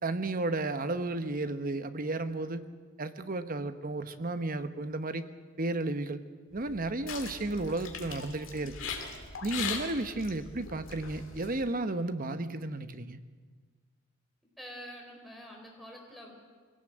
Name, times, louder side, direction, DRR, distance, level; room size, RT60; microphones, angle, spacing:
voice 1, 0.0-2.6 3.0-5.3 5.6-6.2 6.5-8.7 9.4-13.2, right 2 dB, 45° right, 10 dB, 1.0 m, -33 dB
sound 1, 6.6-11.6, left 5 dB, 65° left, 3.0 m, -40 dB
voice 2, 14.6-16.3, equal, ahead, 0 dB, 4.4 m, -46 dB
23.5 x 17.5 x 7.9 m, 1.5 s
head